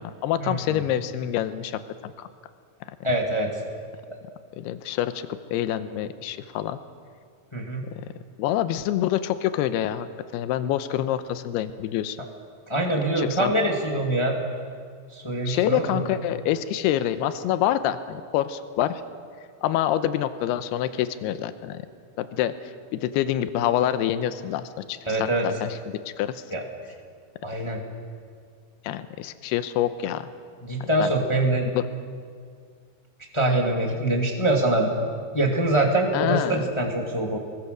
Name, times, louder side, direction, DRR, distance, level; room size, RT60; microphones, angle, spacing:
voice 1, 0.0-2.3 4.6-6.8 8.0-8.1 8.4-10.1 10.3-12.2 13.2-13.6 15.5-19.0 19.6-21.8 22.2-26.4 28.8-30.3 30.8-31.1 31.7-31.8 36.1-36.7, left 11 dB, 85° left, 11 dB, 2.8 m, -26 dB
voice 2, 3.0-3.5 7.5-7.8 12.7-14.4 15.1-16.0 25.1-25.5 26.5-26.6 27.4-27.8 30.6-31.7 33.3-34.9 35.3-37.4, right 1 dB, 15° left, 0 dB, 1.1 m, -24 dB
26.5 x 21.5 x 6.7 m, 2.1 s
omnidirectional pair, 4.7 m